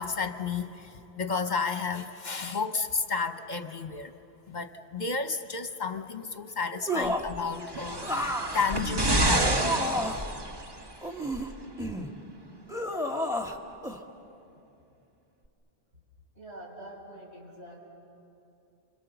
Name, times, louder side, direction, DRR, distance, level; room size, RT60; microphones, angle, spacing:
voice 1, 0.0-4.1 4.5-9.9, left 5 dB, 45° left, 8 dB, 0.9 m, -32 dB
sound 1, 6.9-7.4 8.0-10.3 11.0-12.1 12.7-13.6 13.8-14.0, equal, 5° right, 1.3 m, -31 dB
sound 2, 7.5-10.9 11.8-11.9, right 1 dB, 25° right, 0.9 m, -28 dB
voice 2, 16.3-17.8, right 1 dB, 90° right, -4 dB, 6.7 m, -45 dB
29.0 x 26.0 x 6.9 m, 2.8 s
omnidirectional pair, 1.1 m